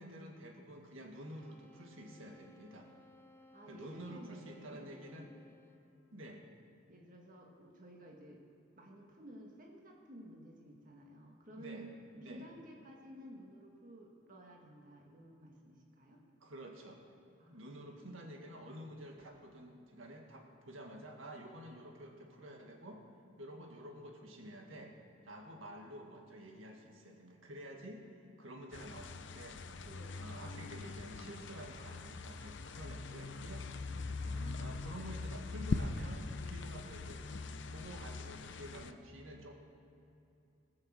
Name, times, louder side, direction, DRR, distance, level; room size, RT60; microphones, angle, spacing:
voice 1, 0.0-2.9 3.7-5.3 6.1-6.4 11.6-11.9 12.1-12.5 16.4-17.0 17.5-23.0 23.4-24.9 25.2-29.9 30.2-33.7 34.2-37.3 37.7-39.5, right 1 dB, 85° right, 1 dB, 1.8 m, -50 dB
sound 1, 1.1-6.0, left 2 dB, 10° left, 0.9 m, -62 dB
voice 2, 3.5-5.4 6.9-8.4 8.8-16.2 17.4-18.4 29.8-30.3 34.2-35.1, right 1 dB, 40° right, -1 dB, 1.8 m, -54 dB
sound 2, 28.7-38.9, left 3 dB, 65° left, 0.6 m, -42 dB
20.0 x 6.8 x 7.4 m, 2.8 s
head